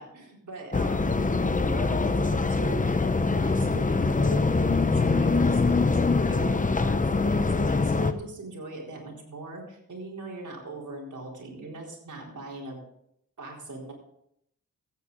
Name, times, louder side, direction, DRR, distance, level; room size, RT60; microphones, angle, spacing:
voice 1, 0.0-3.0 3.4-12.8 13.4-13.9, right 2 dB, 60° right, -2 dB, 4.3 m, -40 dB
sound 1, 0.7-8.1, left 3 dB, 25° left, 0.8 m, -24 dB
14.5 x 9.2 x 4.1 m, 0.74 s
cardioid pair, 75°, 33 cm